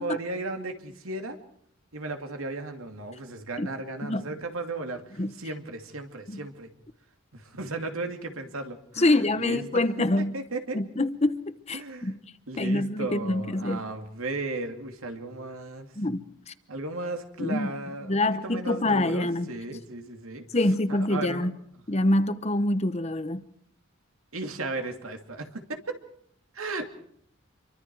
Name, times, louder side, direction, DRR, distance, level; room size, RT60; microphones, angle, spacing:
voice 1, 0.0-1.4 1.9-6.7 7.3-9.8 10.2-10.8 11.7-12.2 12.5-15.9 16.7-20.4 20.9-21.5 24.3-26.0 26.5-26.8, right 2 dB, 90° right, 2.6 m, -35 dB
voice 2, 9.0-10.3 10.7-12.2 12.6-13.8 16.0-16.5 17.4-17.7 18.0-19.5 20.5-21.5 21.9-23.4, left 1 dB, 30° left, 0.9 m, -26 dB
27.0 x 23.5 x 4.7 m
head